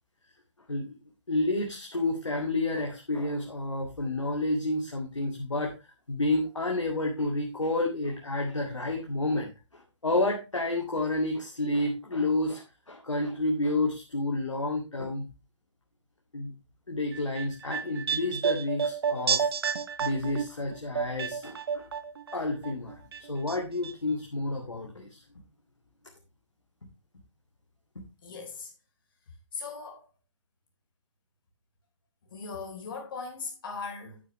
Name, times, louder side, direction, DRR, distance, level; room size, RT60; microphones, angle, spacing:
voice 1, 1.3-5.7 6.1-15.3 16.3-16.5 16.9-19.5 20.0-21.8 22.3-25.2, left 2 dB, 75° left, 2.2 m, -30 dB
sound 1, 17.1-22.4 22.6-23.6 23.8-23.9, right 6 dB, 50° right, 0.8 m, -30 dB
voice 2, 28.2-28.7 29.5-30.1 32.3-34.2, left 4 dB, 45° left, 3.9 m, -39 dB
9.7 x 8.7 x 3.1 m
figure-of-eight pair, 130°, 16 cm